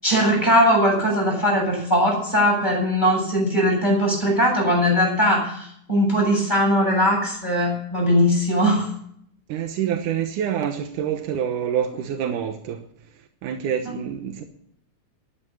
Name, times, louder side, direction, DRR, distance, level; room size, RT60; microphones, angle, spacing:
voice 1, 0.0-8.9 13.8-13.9, equal, 15° left, 8.2 m, -20 dB
voice 2, 9.5-12.8 13.4-14.4, right 9 dB, 90° right, 2.6 m, -26 dB
13.5 x 11.5 x 7.0 m
omnidirectional pair, 3.5 m